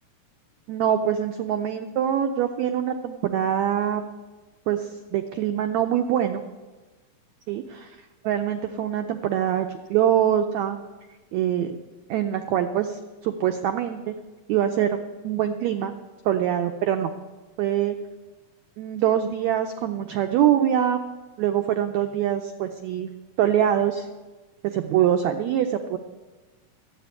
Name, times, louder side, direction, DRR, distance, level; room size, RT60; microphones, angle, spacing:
voice 1, 0.7-4.0 4.7-6.4 7.5-8.0 8.2-10.8 11.3-11.8 12.1-14.2 14.5-15.9 16.2-17.1 17.6-18.0 18.8-21.0 21.4-23.1 23.4-24.1 24.6-26.0, right 10 dB, 90° right, 7 dB, 1.5 m, -24 dB
13.5 x 7.7 x 9.4 m, 1.3 s
omnidirectional pair, 4.0 m